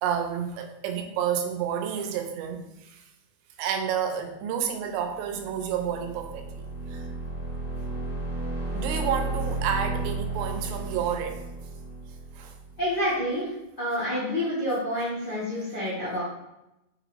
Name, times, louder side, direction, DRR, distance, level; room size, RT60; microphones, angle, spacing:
voice 1, 0.0-3.0 3.6-6.5 6.9-7.0 8.7-11.4 12.4-12.5, right 8 dB, 80° right, 6 dB, 2.8 m, -30 dB
sound 1, 5.2-12.9, right 2 dB, 30° left, 0.8 m, -33 dB
voice 2, 12.8-13.5 13.8-16.2, equal, 90° left, -9 dB, 0.9 m, -28 dB
6.8 x 6.1 x 2.6 m, 0.90 s
omnidirectional pair, 5.0 m